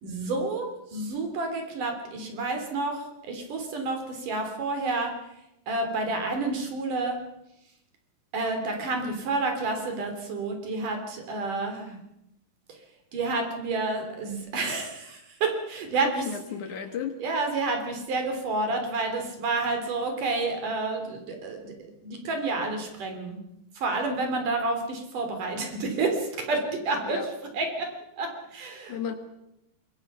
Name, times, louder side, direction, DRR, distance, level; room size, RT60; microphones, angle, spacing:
voice 1, 0.0-5.1 5.7-7.2 8.3-12.0 12.7-12.8 13.1-16.2 17.2-21.7 22.0-23.4 23.7-27.2 27.5-29.0, right 3 dB, 60° right, 4 dB, 4.8 m, -29 dB
voice 2, 16.0-17.2 27.0-27.3 28.9-29.1, left 7 dB, 60° left, 7 dB, 2.6 m, -34 dB
26.0 x 22.5 x 5.7 m, 0.84 s
omnidirectional pair, 4.4 m